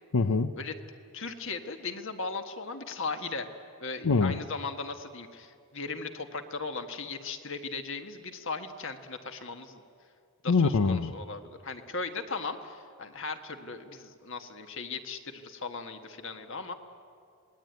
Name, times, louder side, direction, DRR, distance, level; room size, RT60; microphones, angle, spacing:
voice 1, 0.1-0.5 4.0-4.4 10.5-11.1, left 4 dB, 90° left, 10 dB, 0.7 m, -24 dB
voice 2, 1.1-3.5 3.8-9.8 10.4-16.7, left 4 dB, 55° left, 7 dB, 1.6 m, -37 dB
26.5 x 20.0 x 9.3 m, 2.3 s
head